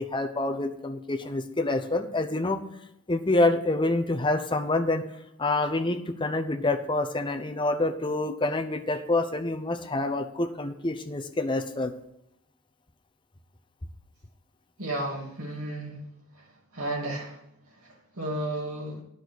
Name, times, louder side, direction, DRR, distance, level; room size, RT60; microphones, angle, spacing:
voice 1, 0.0-2.6 3.1-5.0 5.4-11.9, left 2 dB, 20° left, 6 dB, 0.8 m, -27 dB
voice 2, 14.8-16.0 16.3-16.4 16.7-17.4 18.1-19.0, right 1 dB, 85° right, -1 dB, 2.7 m, -32 dB
9.7 x 6.2 x 6.6 m, 0.79 s
head